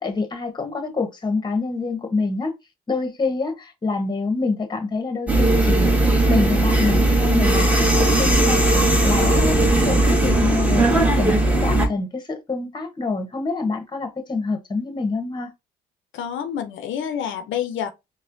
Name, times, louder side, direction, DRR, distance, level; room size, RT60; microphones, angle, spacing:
voice 1, 0.0-2.5 2.9-8.6 9.0-15.5, left 3 dB, 20° left, 1.0 m, -26 dB
sound 1, 5.3-11.9, right 2 dB, 5° right, 1.1 m, -18 dB
voice 2, 16.1-17.9, left 9 dB, 75° left, 0.5 m, -28 dB
4.2 x 2.0 x 2.6 m
cardioid pair, 90°, 20 cm